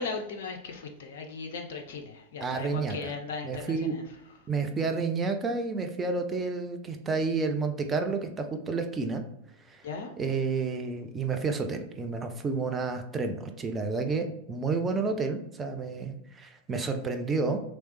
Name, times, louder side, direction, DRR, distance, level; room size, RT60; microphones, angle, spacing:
voice 1, 0.0-4.0 9.8-10.1, left 4 dB, 55° left, 4 dB, 0.4 m, -37 dB
voice 2, 2.4-3.1 3.4-3.9 4.5-9.2 9.7-9.8 10.2-17.6, right 4 dB, 20° right, 6 dB, 0.4 m, -30 dB
3.2 x 3.0 x 3.0 m, 0.84 s
figure-of-eight pair, 90°, 0 cm